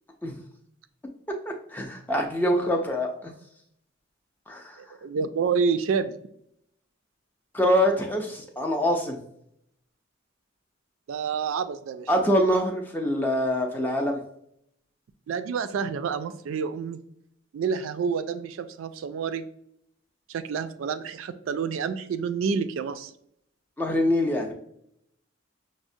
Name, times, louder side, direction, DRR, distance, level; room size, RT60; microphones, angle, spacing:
voice 1, 1.7-3.3 4.5-4.8 7.5-9.2 12.1-14.2 23.8-24.5, equal, 10° left, 1 dB, 0.4 m, -24 dB
voice 2, 4.8-6.2 11.1-12.1 15.3-17.0 17.5-19.5 20.3-23.1, right 6 dB, 75° right, 10 dB, 0.3 m, -28 dB
6.0 x 2.1 x 2.6 m, 0.72 s
head